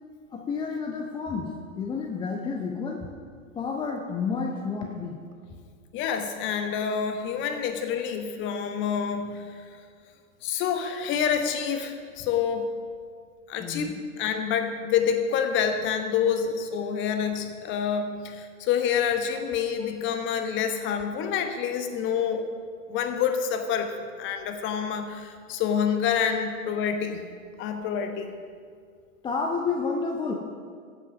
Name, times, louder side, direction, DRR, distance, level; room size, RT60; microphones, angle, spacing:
voice 1, 0.3-3.1 3.6-5.2 13.6-13.9 19.9-20.0 26.3-26.4 29.2-30.3, left 4 dB, 10° left, 2 dB, 0.6 m, -30 dB
voice 2, 5.9-9.8 10.4-12.7 13.5-22.4 22.9-27.2 27.6-28.3, left 7 dB, 30° left, 7 dB, 1.2 m, -27 dB
14.0 x 8.1 x 5.8 m, 2.1 s
figure-of-eight pair, 100°, 41 cm